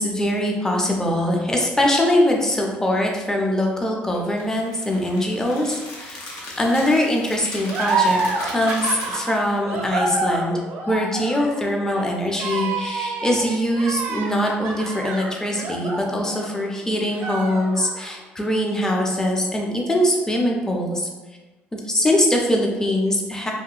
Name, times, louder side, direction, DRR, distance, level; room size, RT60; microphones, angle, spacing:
voice 1, 0.0-10.6 10.9-21.1 21.7-23.5, left 1 dB, 15° left, 0 dB, 0.5 m, -22 dB
sound 1, 4.1-9.6, left 2 dB, 70° left, 0.8 m, -38 dB
sound 2, 7.7-16.7 17.1-18.1, right 3 dB, 65° right, 0.6 m, -27 dB
2.7 x 2.6 x 2.4 m, 1.2 s
cardioid pair, 90°, 4 cm